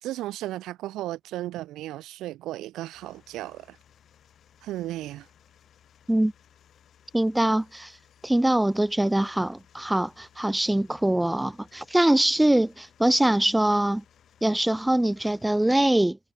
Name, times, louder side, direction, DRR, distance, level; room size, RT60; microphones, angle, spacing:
voice 1, 0.0-3.8 4.6-5.3, right 15 dB, 90° right, 3.5 m, -35 dB
sound 1, 2.9-15.7, left 9 dB, 65° left, 5.8 m, -60 dB
voice 2, 7.1-8.0 8.2-14.0 14.4-16.2, right 1 dB, 10° right, 0.9 m, -23 dB
cardioid pair, 90°, 0 cm